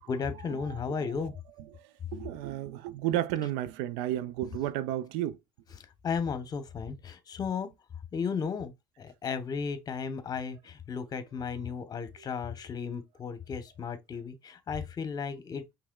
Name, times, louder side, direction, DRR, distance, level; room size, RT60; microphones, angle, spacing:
voice 1, 0.0-1.3 6.0-7.7 8.1-8.7 9.0-15.6, left 6 dB, 40° left, 1.0 m, -34 dB
voice 2, 0.7-1.2 1.7-5.4 12.2-12.3, right 13 dB, 85° right, 0.4 m, -33 dB
4.7 x 3.4 x 2.3 m
supercardioid pair, 80°, 10 cm